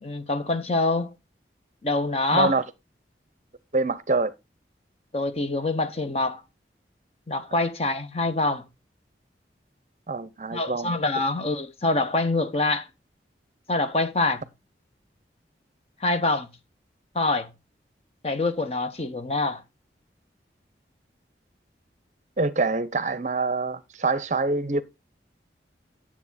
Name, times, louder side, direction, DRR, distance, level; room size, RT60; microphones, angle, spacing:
voice 1, 0.0-1.1 1.8-2.6 5.1-6.4 7.3-8.6 10.5-12.9 13.7-14.4 16.0-16.5 17.1-17.5 18.2-19.6, left 2 dB, 35° left, 1.0 m, -25 dB
voice 2, 2.3-2.6 3.7-4.3 7.5-7.6 10.1-10.9 22.4-24.8, right 3 dB, 40° right, 0.6 m, -25 dB
9.8 x 7.4 x 4.0 m
head